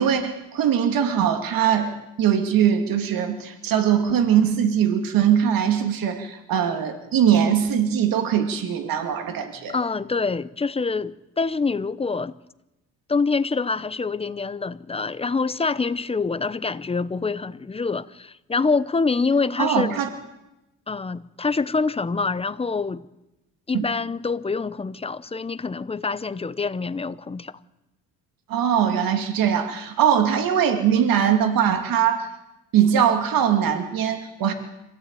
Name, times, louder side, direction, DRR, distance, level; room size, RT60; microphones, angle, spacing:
voice 1, 0.0-9.8 19.6-20.1 23.7-23.8 28.5-32.3 32.7-34.5, right 9 dB, 75° right, 2.5 m, -21 dB
voice 2, 9.7-12.4 13.1-19.9 20.9-23.0 23.7-27.5, left 4 dB, 15° left, 0.7 m, -25 dB
25.5 x 16.0 x 9.0 m
cardioid pair, 135°, 35 cm